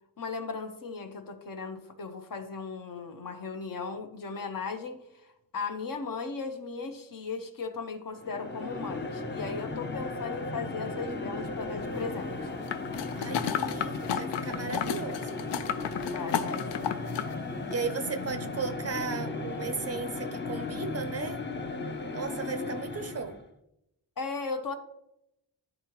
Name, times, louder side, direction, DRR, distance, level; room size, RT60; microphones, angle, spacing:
voice 1, 0.2-12.5 16.1-17.1 24.2-24.7, left 4 dB, 50° left, 7 dB, 0.8 m, -37 dB
sound 1, 8.2-23.5, left 3 dB, 25° left, 0.6 m, -36 dB
sound 2, 12.7-17.3 17.7-17.8, left 9 dB, 80° left, 0.5 m, -33 dB
voice 2, 13.2-15.4 17.7-21.4 22.1-23.4, right 5 dB, 35° right, 9 dB, 0.5 m, -36 dB
11.0 x 3.7 x 3.0 m, 0.84 s
wide cardioid pair, 110°, 42 cm